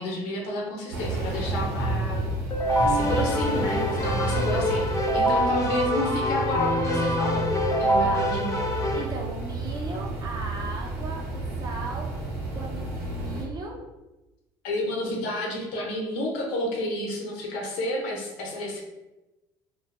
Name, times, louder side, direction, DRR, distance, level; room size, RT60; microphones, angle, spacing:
voice 1, 0.0-7.5 7.8-8.7 14.6-18.8, left 1 dB, 80° left, -1 dB, 0.8 m, -31 dB
sound 1, 0.9-13.4, right 2 dB, 85° right, 0.9 m, -31 dB
Keyboard (musical), 2.5-9.0, equal, 30° left, 0.6 m, -25 dB
voice 2, 4.3-4.7 8.0-8.3 8.9-12.2 12.5-13.7, right 2 dB, 35° right, -1 dB, 0.7 m, -37 dB
2.5 x 2.2 x 2.5 m, 1.0 s
supercardioid pair, 100°, 11 cm